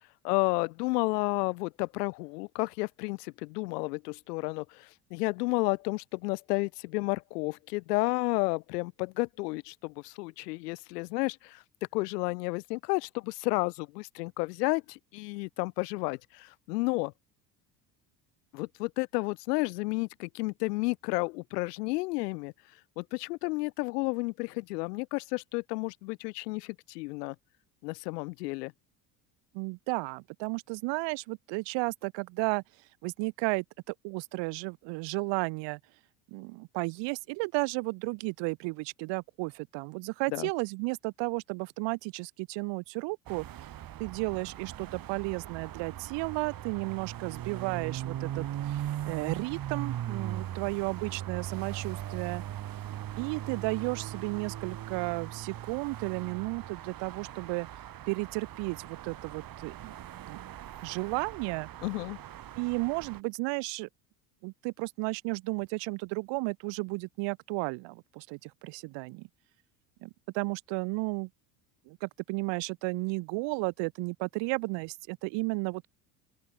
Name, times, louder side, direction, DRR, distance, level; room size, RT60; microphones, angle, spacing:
voice 1, 0.2-11.6 11.9-17.1 18.5-22.5 23.0-27.3 27.8-28.7 40.3-40.5 61.8-62.2, left 24 dB, 70° left, 1.2 m, -31 dB
voice 2, 29.5-32.6 33.0-35.8 36.3-43.5 44.0-52.4 53.2-57.7 58.1-60.0 60.3-60.5 60.8-61.7 62.5-63.9 64.4-69.3 70.0-71.3 71.9-75.9, right 28 dB, 60° right, 1.4 m, -33 dB
sound 1, 43.3-63.2, right 12 dB, 45° right, 2.9 m, -39 dB
open air
hypercardioid pair, 70°, 49 cm